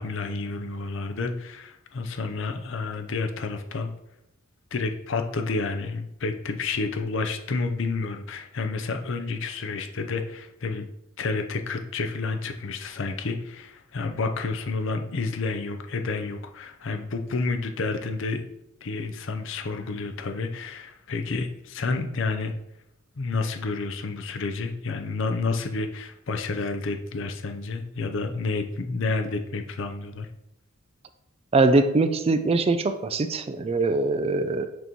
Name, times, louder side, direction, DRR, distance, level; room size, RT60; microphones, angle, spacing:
voice 1, 0.0-3.9 4.7-10.9 11.2-18.4 18.8-22.5 23.2-30.3, left 3 dB, 60° left, 6 dB, 0.6 m, -30 dB
voice 2, 31.5-34.7, right 3 dB, 30° right, 10 dB, 0.3 m, -22 dB
6.1 x 3.0 x 5.2 m, 0.83 s
head